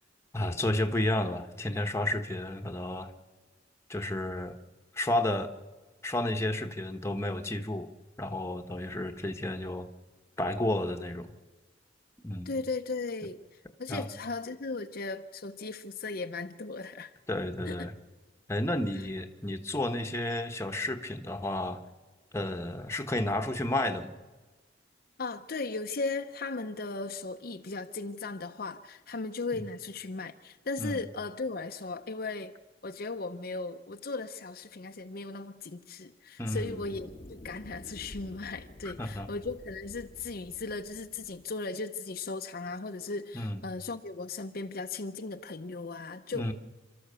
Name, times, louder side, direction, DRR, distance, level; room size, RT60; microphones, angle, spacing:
voice 1, 0.3-3.1 3.9-4.6 4.9-5.5 6.0-7.9 8.2-9.9 10.4-11.3 12.2-12.5 13.9-14.1 17.3-17.9 18.5-21.8 22.3-24.2 29.5-29.6 30.8-31.0 36.4-36.8 38.8-39.3 43.3-43.6 46.3-46.5, left 1 dB, 15° left, 1.2 m, -31 dB
voice 2, 12.5-17.2 17.7-17.8 25.2-32.5 32.8-46.5, left 3 dB, 50° left, 0.7 m, -37 dB
sound 1, 36.5-41.5, left 1 dB, 35° left, 1.0 m, -49 dB
28.5 x 13.0 x 6.9 m
head